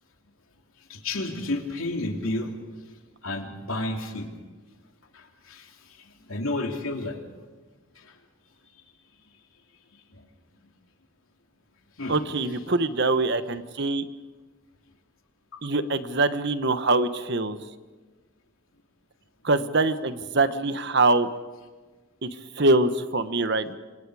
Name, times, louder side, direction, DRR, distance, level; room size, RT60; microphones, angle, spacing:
voice 1, 0.9-2.5 3.2-4.3 5.1-5.7 6.0-7.2 8.0-8.1 10.1-10.2 12.0-12.2, left 2 dB, 85° left, 3 dB, 3.0 m, -31 dB
voice 2, 12.1-14.1 15.6-17.6 19.4-21.3 22.2-22.3 22.5-23.8, right 2 dB, 55° right, 11 dB, 1.1 m, -23 dB
27.5 x 26.5 x 4.9 m, 1.3 s
head